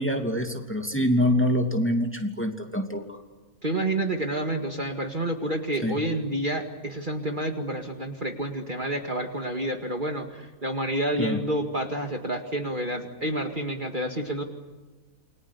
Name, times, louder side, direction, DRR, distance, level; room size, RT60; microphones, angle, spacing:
voice 1, 0.0-3.2 5.8-6.0 11.2-11.4, equal, 10° left, 4 dB, 2.6 m, -25 dB
voice 2, 3.6-14.4, right 1 dB, 35° right, 4 dB, 2.2 m, -29 dB
29.0 x 23.5 x 8.3 m, 1.3 s
omnidirectional pair, 1.6 m